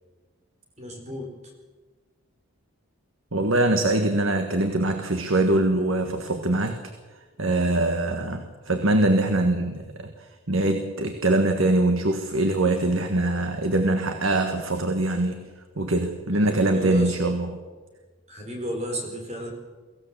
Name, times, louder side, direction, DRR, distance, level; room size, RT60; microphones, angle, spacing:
voice 1, 0.8-1.3 16.4-17.1 18.3-19.5, equal, 30° right, 2 dB, 4.5 m, -33 dB
voice 2, 3.3-6.8 7.4-10.1 10.5-15.5 15.8-17.6, right 2 dB, 70° right, 6 dB, 1.5 m, -23 dB
24.0 x 16.0 x 7.4 m, 1.3 s
head